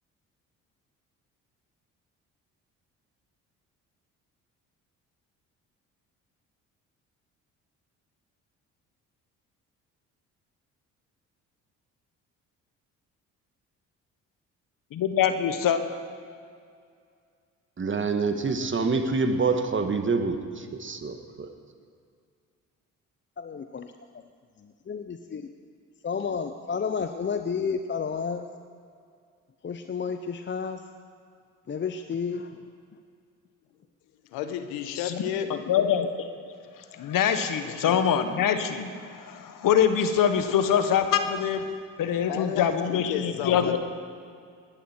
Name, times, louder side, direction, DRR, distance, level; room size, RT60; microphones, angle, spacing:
voice 1, 14.9-15.8 35.0-35.2 35.5-36.3 36.9-41.6 42.0-43.8, left 8 dB, 60° left, 9 dB, 1.3 m, -24 dB
voice 2, 17.8-21.5, right 4 dB, 30° right, 7 dB, 1.5 m, -26 dB
voice 3, 23.4-23.9 24.9-25.5 26.0-28.5 29.6-30.8 31.7-32.6, left 6 dB, 30° left, 8 dB, 0.7 m, -31 dB
voice 4, 34.3-35.6 37.6-38.0 42.3-43.8, left 9 dB, 80° left, 9 dB, 1.0 m, -33 dB
19.0 x 11.0 x 4.5 m, 2.3 s
hypercardioid pair, 60°, 37 cm